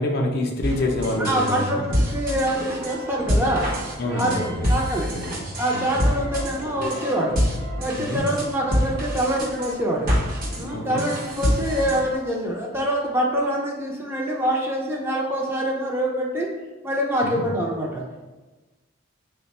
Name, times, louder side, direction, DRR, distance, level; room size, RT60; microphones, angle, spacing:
voice 1, 0.0-1.9 4.0-4.7 5.1-5.3 5.7-5.9 8.0-8.2 10.7-11.0 17.2-17.4, left 1 dB, 50° left, 1 dB, 0.5 m, -26 dB
sound 1, 0.6-12.2, equal, 45° right, 0.7 m, -26 dB
voice 2, 1.2-3.7 4.1-5.2 5.6-7.4 7.8-10.1 10.6-16.5 16.8-18.0, right 1 dB, 10° right, -2 dB, 0.4 m, -25 dB
3.2 x 2.2 x 4.1 m, 1.2 s
head